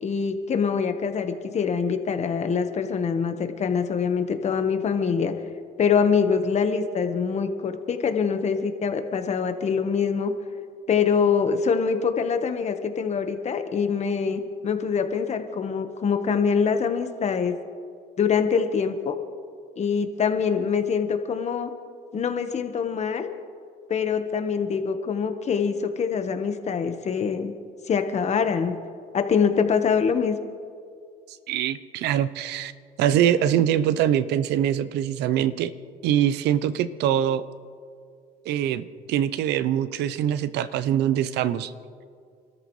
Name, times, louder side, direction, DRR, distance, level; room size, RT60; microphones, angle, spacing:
voice 1, 0.0-5.3 5.8-10.3 10.9-17.5 18.2-19.2 19.8-21.7 22.1-23.3 23.9-27.5 27.9-28.7 29.1-30.4, left 6 dB, 40° left, 7 dB, 1.4 m, -24 dB
voice 2, 31.5-32.7 33.0-35.7 36.0-37.4 38.4-41.7, right 10 dB, 80° right, 14 dB, 0.8 m, -23 dB
27.5 x 13.5 x 3.3 m, 2.2 s
cardioid pair, 110°, 17 cm